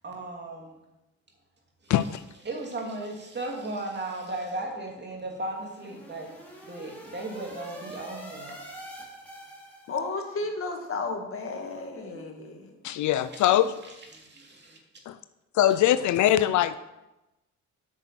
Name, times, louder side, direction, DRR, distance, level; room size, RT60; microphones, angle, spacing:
voice 1, 0.0-0.8 1.8-1.9 2.4-6.3 6.6-8.6 12.1-12.2 12.5-12.6 13.3-13.5 14.1-14.8, right 2 dB, 35° right, 0 dB, 2.6 m, -36 dB
voice 2, 1.9-2.2 12.8-13.7 15.1-15.2 15.5-16.8, left 12 dB, 75° left, 14 dB, 0.5 m, -22 dB
sound 1, 5.2-10.2, equal, 5° left, 2.9 m, -45 dB
voice 3, 9.9-12.7, left 3 dB, 45° left, 3 dB, 1.8 m, -33 dB
8.9 x 6.1 x 6.1 m, 0.98 s
cardioid pair, 90°, 30 cm